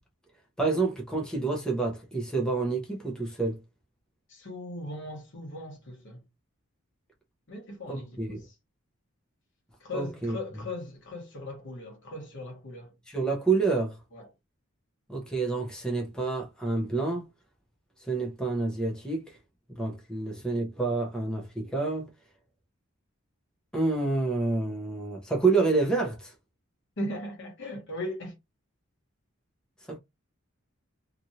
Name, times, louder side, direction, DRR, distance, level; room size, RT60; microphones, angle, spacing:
voice 1, 0.6-3.6 7.9-8.4 9.9-10.3 13.1-14.0 15.1-17.3 18.0-19.4 19.7-22.1 23.7-26.3 29.9-30.0, right 3 dB, 5° left, 0.8 m, -28 dB
voice 2, 4.3-6.2 7.5-8.5 9.8-12.9 14.1-14.3 27.0-28.4, left 1 dB, 60° left, 1.2 m, -38 dB
2.9 x 2.5 x 2.7 m
head